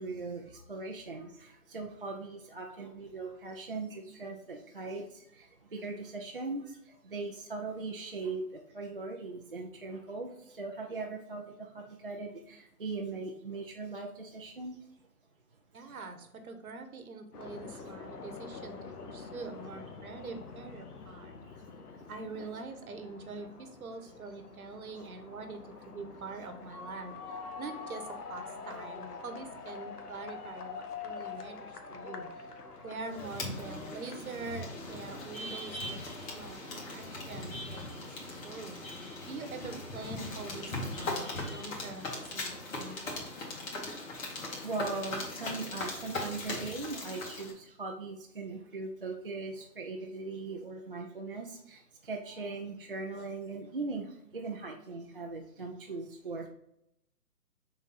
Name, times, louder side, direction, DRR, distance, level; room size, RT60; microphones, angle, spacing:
voice 1, 0.0-14.8 15.8-16.0 21.4-22.1 22.4-22.5 32.8-32.9 36.5-36.6 43.6-43.8 44.4-56.5, right 3 dB, 40° right, 0 dB, 0.4 m, -40 dB
voice 2, 15.7-21.3 22.1-25.6 25.9-32.5 32.8-38.8 39.3-43.0, right 4 dB, 65° right, 7 dB, 1.1 m, -44 dB
sound 1, 17.3-36.5, left 5 dB, 75° left, 1.0 m, -46 dB
sound 2, 33.1-47.5, left 2 dB, 55° left, 2.2 m, -39 dB
6.1 x 4.1 x 3.9 m, 0.80 s
hypercardioid pair, 155°, 47 cm